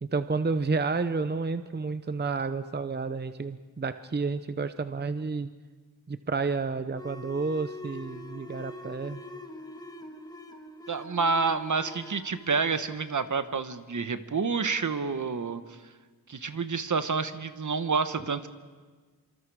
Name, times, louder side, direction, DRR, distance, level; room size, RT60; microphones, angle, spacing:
voice 1, 0.0-5.5 6.1-9.2, right 4 dB, 30° right, 11 dB, 0.7 m, -30 dB
sound 1, 6.9-14.1, left 1 dB, 10° left, 1.5 m, -44 dB
voice 2, 10.9-15.6 16.3-18.5, right 4 dB, 55° right, 10 dB, 1.2 m, -28 dB
26.5 x 26.0 x 4.8 m, 1.4 s
wide cardioid pair, 75°, 36 cm